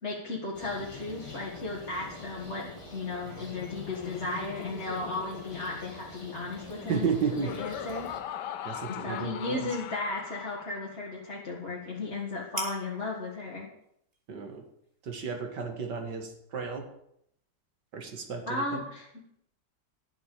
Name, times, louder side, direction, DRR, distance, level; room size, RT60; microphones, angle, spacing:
voice 1, 0.0-7.1 7.4-8.1 8.9-13.7 18.5-19.1, left 2 dB, 40° left, -4 dB, 2.3 m, -35 dB
sound 1, 0.5-8.2, left 1 dB, 20° left, 2.1 m, -47 dB
Laughter, 0.6-11.1, left 10 dB, 85° left, 1.4 m, -42 dB
voice 2, 6.9-7.6 8.6-9.7 14.3-14.6 15.0-16.9 17.9-18.9, right 6 dB, 85° right, 4 dB, 2.4 m, -33 dB
sound 2, 8.2-16.0, right 2 dB, 35° right, 2.8 m, -48 dB
11.5 x 7.9 x 8.8 m, 0.73 s
omnidirectional pair, 1.8 m